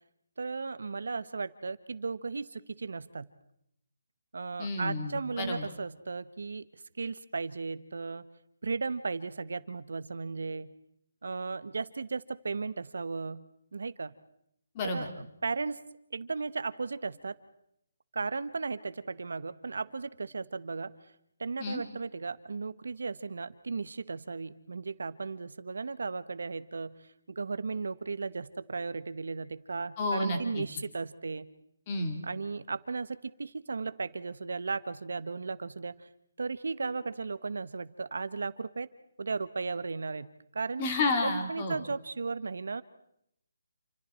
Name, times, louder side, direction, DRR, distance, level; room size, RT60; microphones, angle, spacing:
voice 1, 0.4-3.3 4.3-6.6 7.0-8.2 8.6-10.7 11.2-14.1 14.9-15.8 16.1-17.4 18.1-20.9 21.4-27.0 27.3-31.5 32.2-36.1 36.4-38.9 39.2-40.3 40.5-40.9 41.2-42.8, right 4 dB, 65° right, 14 dB, 1.3 m, -35 dB
voice 2, 4.6-5.7 14.7-15.1 21.6-21.8 30.0-30.6 31.9-32.2 40.8-41.8, left 2 dB, 20° left, 4 dB, 2.6 m, -31 dB
28.5 x 27.5 x 4.5 m, 0.77 s
hypercardioid pair, 175°, 0 cm